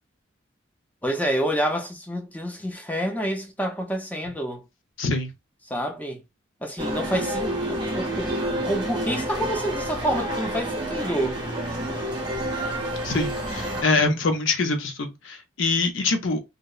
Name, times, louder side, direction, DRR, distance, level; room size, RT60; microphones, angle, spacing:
voice 1, 1.0-4.6 5.7-6.2 6.6-8.4 8.6-11.4, equal, 10° left, 0.4 m, -28 dB
voice 2, 5.0-5.3 13.0-16.4, left 3 dB, 65° left, 0.6 m, -24 dB
sound 1, 6.8-13.8, right 1 dB, 20° right, 0.7 m, -29 dB
2.8 x 2.0 x 2.3 m
head